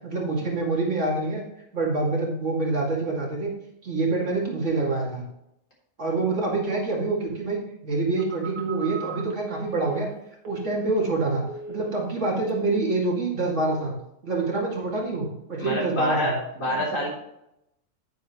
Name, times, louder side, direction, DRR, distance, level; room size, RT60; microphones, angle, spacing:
voice 1, 0.0-1.4 1.7-3.5 3.8-5.2 6.0-10.1 10.5-13.9 14.2-16.3 16.7-16.8, right 3 dB, 60° right, -3 dB, 2.8 m, -26 dB
Telephone, 8.2-11.2 11.5-12.2 12.5-12.8, right 4 dB, 85° right, 1.8 m, -38 dB
voice 2, 15.6-17.1, equal, 75° left, -4 dB, 4.0 m, -27 dB
9.9 x 9.2 x 3.1 m, 0.82 s
omnidirectional pair, 1.4 m